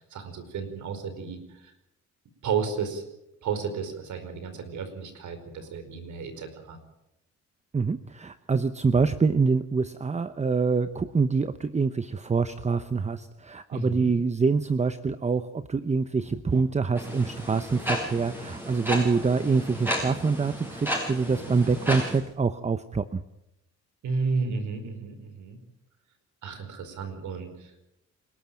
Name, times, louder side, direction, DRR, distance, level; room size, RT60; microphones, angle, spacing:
voice 1, 0.0-1.7 2.4-3.0 3.4-6.8 13.7-14.1 24.0-25.6 26.4-27.7, right 5 dB, 75° right, 9 dB, 4.9 m, -32 dB
voice 2, 7.7-23.2, right 4 dB, 20° right, 12 dB, 0.9 m, -25 dB
sound 1, 17.0-22.2, equal, 5° right, 7.2 m, -33 dB
28.0 x 13.0 x 9.1 m, 0.87 s
cardioid pair, 90°, 30 cm